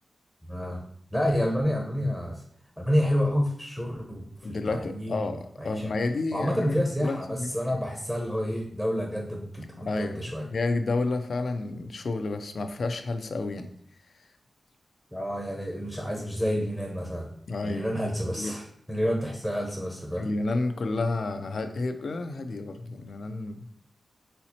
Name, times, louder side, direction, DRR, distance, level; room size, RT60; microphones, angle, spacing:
voice 1, 0.5-0.8 1.1-2.4 2.8-4.2 4.7-5.2 5.6-5.9 6.3-10.5 15.1-17.3 17.6-20.3, equal, 5° right, 1 dB, 0.8 m, -29 dB
voice 2, 4.4-7.5 9.7-13.7 17.5-17.9 18.3-18.6 20.1-23.6, left 3 dB, 70° left, 7 dB, 0.4 m, -30 dB
4.3 x 4.0 x 2.8 m, 0.65 s
cardioid pair, 60°, 0 cm